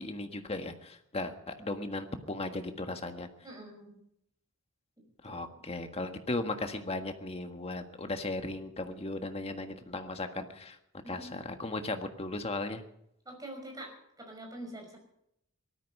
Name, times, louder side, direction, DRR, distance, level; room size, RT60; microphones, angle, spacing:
voice 1, 0.0-3.3 5.2-10.8 11.1-12.8, left 2 dB, 30° left, 6 dB, 1.6 m, -36 dB
voice 2, 3.4-4.0 5.2-5.6 11.0-11.4 13.3-15.0, right 1 dB, 20° right, 2 dB, 5.6 m, -45 dB
18.5 x 13.5 x 5.5 m, 0.76 s
head